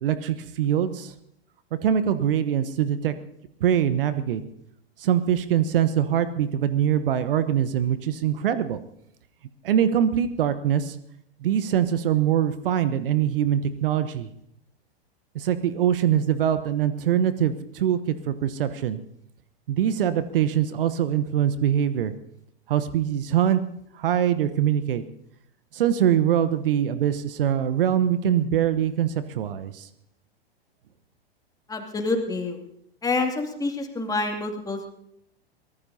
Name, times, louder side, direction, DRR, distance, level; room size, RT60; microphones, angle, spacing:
voice 1, 0.0-1.1 1.8-3.1 3.6-4.4 5.0-8.8 9.6-11.0 11.4-14.3 15.3-19.0 19.7-22.1 22.7-23.6 23.9-25.0 25.7-29.9, right 10 dB, 60° right, 13 dB, 1.1 m, -23 dB
voice 2, 31.7-32.6 33.0-34.9, left 3 dB, 10° left, 3 dB, 2.5 m, -27 dB
23.5 x 18.5 x 2.8 m, 0.75 s
figure-of-eight pair, 100°, 31 cm